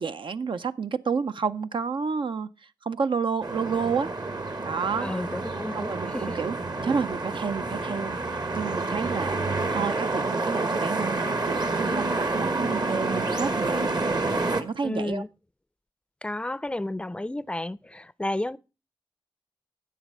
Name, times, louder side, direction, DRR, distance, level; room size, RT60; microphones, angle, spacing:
voice 1, 0.0-2.5 2.8-4.1 4.6-5.1 5.7-6.6 6.8-9.4 9.7-14.2 14.5-15.2, right 5 dB, 70° right, 0.5 m, -30 dB
sound 1, 3.4-14.6, right 3 dB, 50° right, 1.2 m, -28 dB
voice 2, 5.0-6.2 14.8-15.3 16.2-18.6, left 1 dB, 10° left, 0.4 m, -32 dB
10.0 x 7.3 x 5.3 m
cardioid pair, 50°, 9 cm